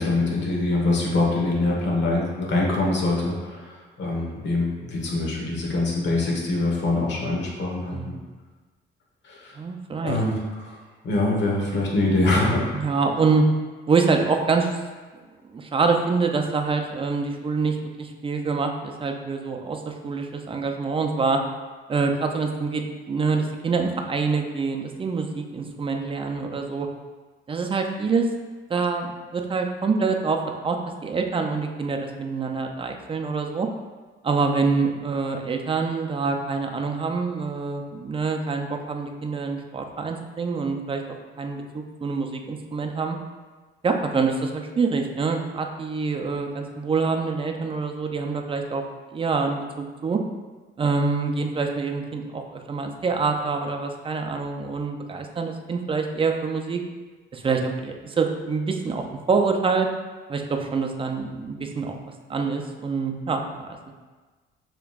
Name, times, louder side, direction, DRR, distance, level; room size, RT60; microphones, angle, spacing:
voice 1, 0.0-7.9 9.2-9.5 10.0-10.3 10.6-10.7 11.0-12.6, left 2 dB, 65° left, -3 dB, 1.2 m, -24 dB
voice 2, 9.5-10.2 12.7-13.5 13.9-14.8 15.5-21.4 21.9-26.9 27.5-28.3 28.7-30.4 30.6-30.8 31.0-33.7 34.2-43.2 43.8-48.8 49.1-50.2 50.8-56.8 57.3-59.9 60.3-62.0 62.3-63.8, right 4 dB, 25° right, 3 dB, 0.5 m, -26 dB
6.8 x 3.0 x 2.4 m, 1.3 s
cardioid pair, 90°, 20 cm